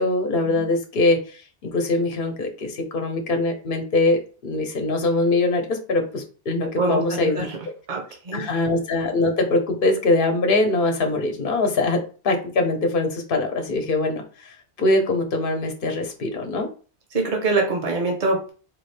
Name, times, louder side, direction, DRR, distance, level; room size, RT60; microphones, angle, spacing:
voice 1, 0.0-7.5 8.3-16.7, left 2 dB, 55° left, 4 dB, 1.0 m, -23 dB
voice 2, 6.8-7.6 7.9-8.5 17.1-18.5, right 3 dB, 45° right, 1 dB, 1.1 m, -24 dB
4.5 x 2.5 x 3.3 m, 0.37 s
omnidirectional pair, 1.1 m